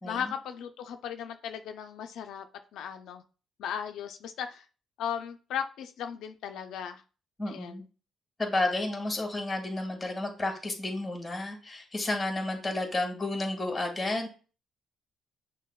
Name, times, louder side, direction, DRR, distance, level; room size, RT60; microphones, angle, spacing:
voice 1, 0.0-2.4 2.7-3.2 3.6-4.6 5.0-7.0 7.5-7.9, left 8 dB, 80° left, 6 dB, 0.3 m, -36 dB
voice 2, 7.4-7.8 8.4-14.3, left 2 dB, 15° left, 2 dB, 1.4 m, -31 dB
6.2 x 2.1 x 2.3 m, 0.36 s
cardioid pair, 90°, 0 cm